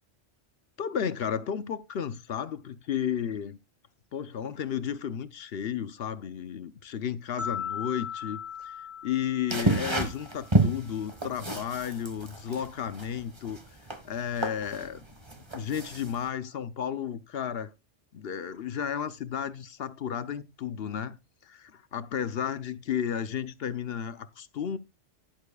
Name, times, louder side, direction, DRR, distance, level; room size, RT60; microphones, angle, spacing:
voice 1, 0.8-3.6 4.1-13.6 14.0-15.0 15.3-17.7 18.1-21.2 21.4-24.8, left 8 dB, 60° left, 0.9 m, -33 dB
sound 1, 7.4-10.5, left 8 dB, 45° right, 6.4 m, -38 dB
sound 2, 9.5-16.3, right 2 dB, 25° right, 1.4 m, -30 dB
11.5 x 10.5 x 2.3 m
omnidirectional pair, 1.2 m